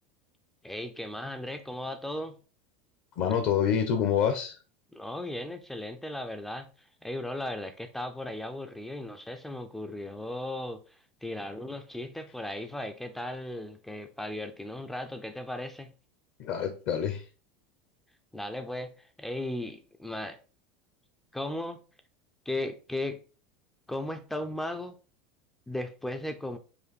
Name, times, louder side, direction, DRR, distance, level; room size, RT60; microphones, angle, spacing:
voice 1, 0.6-2.4 4.9-6.7 7.0-15.9 18.3-20.4 21.3-21.8 22.5-23.2 23.9-25.0 25.7-26.6, left 1 dB, 5° left, 0.3 m, -36 dB
voice 2, 3.2-4.6 16.4-17.2, left 8 dB, 45° left, 0.6 m, -27 dB
5.0 x 2.5 x 4.1 m
supercardioid pair, 165°, 6 cm